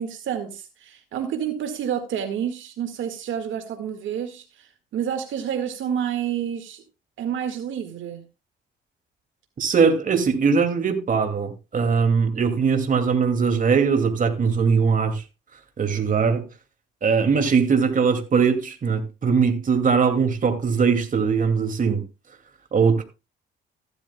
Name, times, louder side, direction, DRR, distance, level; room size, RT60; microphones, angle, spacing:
voice 1, 0.0-6.8 7.2-8.2, right 9 dB, 75° right, 1.9 m, -29 dB
voice 2, 9.6-15.2 15.8-16.5 17.0-22.0 22.7-23.0, right 5 dB, 40° right, 2.5 m, -21 dB
15.0 x 12.0 x 2.3 m
cardioid pair, 90°, 20 cm